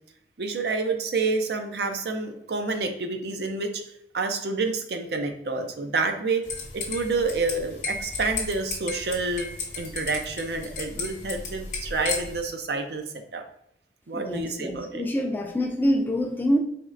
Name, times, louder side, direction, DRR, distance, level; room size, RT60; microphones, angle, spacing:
voice 1, 0.4-3.8 4.1-6.5 6.7-9.5 9.8-13.4 14.1-15.0, right 3 dB, 70° right, 5 dB, 0.5 m, -28 dB
sound 1, 6.4-12.4, left 4 dB, 45° left, 0.8 m, -34 dB
voice 2, 14.1-16.6, equal, 10° left, 3 dB, 0.3 m, -25 dB
4.3 x 3.1 x 2.5 m, 0.76 s
head